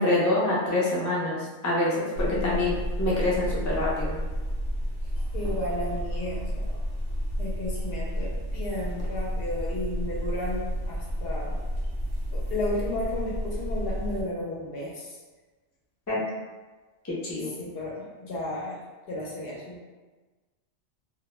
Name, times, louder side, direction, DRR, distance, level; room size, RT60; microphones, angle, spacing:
voice 1, 0.0-4.2 16.1-16.2 17.0-17.5, left 2 dB, 30° left, -7 dB, 0.3 m, -26 dB
voice 2, 2.2-2.7 5.3-6.8 7.4-11.6 12.3-15.2 17.6-18.8 19.1-19.8, left 1 dB, 60° left, -4 dB, 0.7 m, -33 dB
sound 1, 2.2-14.2, equal, 65° right, 0.7 m, -31 dB
2.1 x 2.1 x 3.0 m, 1.3 s
omnidirectional pair, 1.2 m